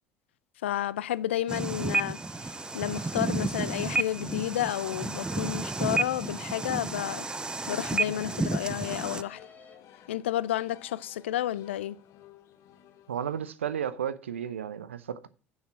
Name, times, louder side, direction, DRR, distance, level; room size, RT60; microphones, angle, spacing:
voice 1, 0.6-2.2 2.7-7.3 7.7-9.4 10.1-12.0, left 12 dB, 70° left, 0.4 m, -31 dB
sound 1, 1.5-9.2, right 3 dB, 15° right, 0.4 m, -31 dB
sound 2, 1.7-10.7 11.0-11.1 11.6-11.7, left 4 dB, 25° left, 2.2 m, -54 dB
sound 3, 4.7-13.9, left 10 dB, 50° left, 1.0 m, -56 dB
voice 2, 13.1-15.3, right 8 dB, 75° right, 0.6 m, -33 dB
7.1 x 6.2 x 7.3 m
figure-of-eight pair, 60°, 7 cm